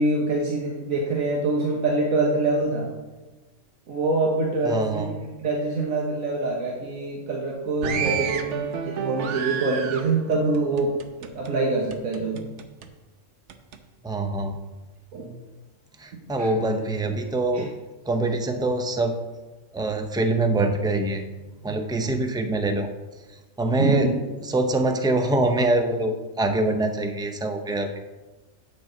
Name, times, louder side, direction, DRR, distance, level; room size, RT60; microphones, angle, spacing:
voice 1, 0.0-2.9 3.9-5.1 5.4-8.6 8.9-10.9 11.2-12.4 15.1-15.3 16.4-16.5 17.5-17.6 23.8-24.1, right 3 dB, 85° right, -2 dB, 1.6 m, -25 dB
voice 2, 4.6-5.1 14.0-14.6 16.0-17.7 18.1-19.2 19.7-21.3 21.6-22.9 23.6-24.1 24.4-28.0, right 2 dB, 5° right, 5 dB, 0.4 m, -24 dB
sound 1, 7.8-11.5 11.9-12.9 13.5-13.8, right 7 dB, 65° right, 1.0 m, -31 dB
9.1 x 7.8 x 3.9 m, 1.2 s
omnidirectional pair, 1.4 m